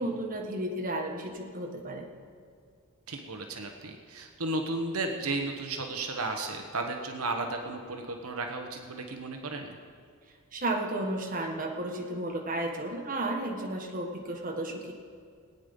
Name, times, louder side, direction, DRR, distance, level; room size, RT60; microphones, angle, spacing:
voice 1, 0.0-2.1 10.5-14.9, right 1 dB, 40° right, 1 dB, 1.5 m, -33 dB
voice 2, 3.1-9.7, right 2 dB, 80° right, 4 dB, 1.2 m, -34 dB
20.5 x 9.2 x 5.4 m, 2.1 s
head